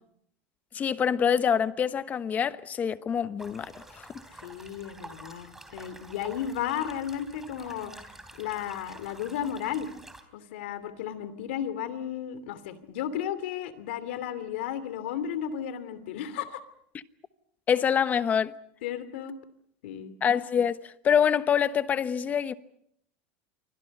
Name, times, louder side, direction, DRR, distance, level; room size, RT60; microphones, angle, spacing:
voice 1, 0.7-4.1 17.7-18.5 20.2-22.5, left 8 dB, 25° left, 1.1 m, -25 dB
sound 1, 3.4-10.2, right 1 dB, 5° right, 3.3 m, -48 dB
voice 2, 4.3-7.9 8.4-9.9 10.3-16.6 18.8-19.4 19.8-20.1, left 9 dB, 85° left, 2.8 m, -34 dB
29.0 x 24.5 x 5.5 m
supercardioid pair, 140°, 6 cm